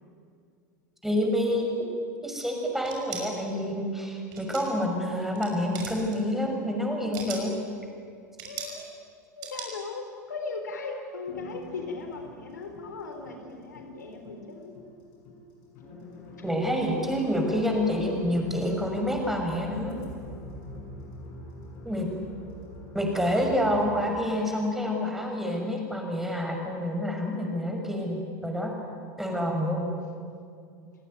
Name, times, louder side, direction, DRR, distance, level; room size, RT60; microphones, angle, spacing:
voice 1, 1.0-1.7 2.2-7.5 16.4-19.9 21.8-22.1 22.9-28.7 29.2-29.9, equal, 5° right, 1 dB, 6.2 m, -28 dB
sound 1, 2.8-3.2 4.3-4.8 5.2-5.5 5.7-6.2 6.9-7.5 8.4-8.8 9.4-9.7, right 7 dB, 45° right, 6.1 m, -38 dB
voice 2, 8.4-8.9 9.4-14.7, left 4 dB, 75° left, 4 dB, 3.9 m, -38 dB
sound 2, 11.3-24.1, left 1 dB, 50° left, 6.3 m, -44 dB
28.5 x 19.0 x 9.3 m, 2.3 s
figure-of-eight pair, 85°, 10 cm